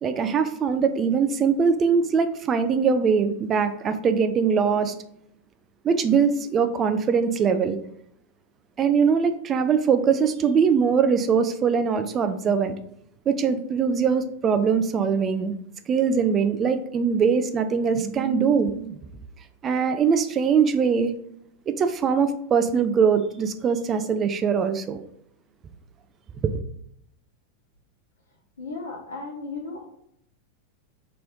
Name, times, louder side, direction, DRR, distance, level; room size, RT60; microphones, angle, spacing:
voice 1, 0.0-4.9 5.8-7.8 8.8-12.8 13.3-15.6 15.9-19.0 19.6-21.1 21.7-25.0 26.4-26.5, right 6 dB, 25° right, 0.4 m, -22 dB
voice 2, 28.6-29.9, left 3 dB, 70° left, 1.1 m, -35 dB
3.1 x 2.9 x 3.5 m
figure-of-eight pair, 90°, 0 cm